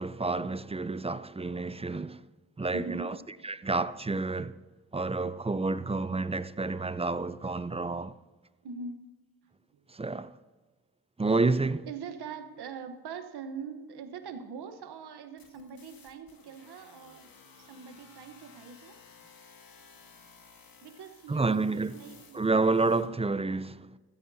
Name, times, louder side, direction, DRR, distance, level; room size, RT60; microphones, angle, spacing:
voice 1, 0.0-2.2 2.6-3.2 3.4-4.6 4.9-8.1 9.9-10.3 11.2-11.9 21.3-22.0 22.3-23.9, right 3 dB, 15° right, 0.5 m, -29 dB
voice 2, 2.7-3.4 8.6-9.0 9.7-9.8 11.9-17.3 17.6-19.0 20.8-22.9, right 5 dB, 80° right, 1.1 m, -43 dB
sound 1, 15.4-23.1, left 5 dB, 60° left, 1.7 m, -56 dB
15.5 x 13.0 x 2.8 m
supercardioid pair, 45°, 39 cm